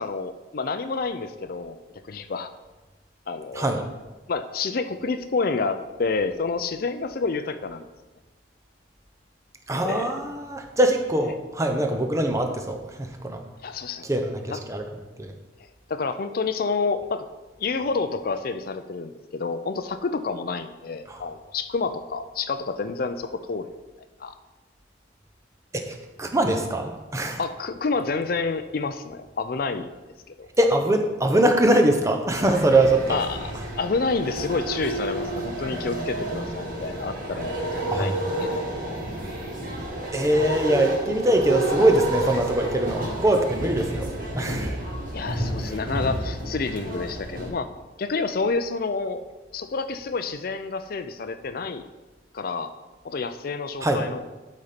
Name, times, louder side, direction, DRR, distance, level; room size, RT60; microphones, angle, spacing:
voice 1, 0.0-1.8 2.0-2.5 3.3-3.7 4.3-7.8 9.8-10.2 13.6-14.1 14.5-14.6 15.9-17.2 17.6-23.7 24.2-24.3 27.4-29.9 30.4-30.5 33.1-33.5 33.8-38.6 45.1-47.7 48.0-49.3 49.5-51.8 52.3-52.7 53.0-54.2, left 4 dB, 50° left, 10 dB, 0.5 m, -29 dB
voice 2, 9.7-13.4 14.0-14.9 15.2-15.3 21.1-21.2 25.7-27.4 30.6-33.2 37.9-38.2 40.1-44.8 53.8-54.0, right 1 dB, 15° right, 4 dB, 0.7 m, -22 dB
sound 1, 32.3-47.5, right 1 dB, 50° right, 1.8 m, -30 dB
12.0 x 4.2 x 5.1 m, 1.2 s
head